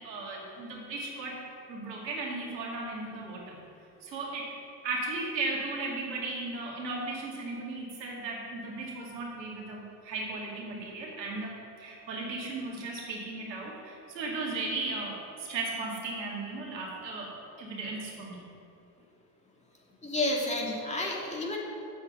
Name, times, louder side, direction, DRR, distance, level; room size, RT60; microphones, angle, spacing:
voice 1, 0.0-3.6 4.0-4.5 4.8-18.5, right 3 dB, 85° right, -2 dB, 2.2 m, -36 dB
voice 2, 20.0-21.6, left 2 dB, 15° left, -2 dB, 2.4 m, -30 dB
7.4 x 7.1 x 7.7 m, 2.6 s
hypercardioid pair, 70°, 50 cm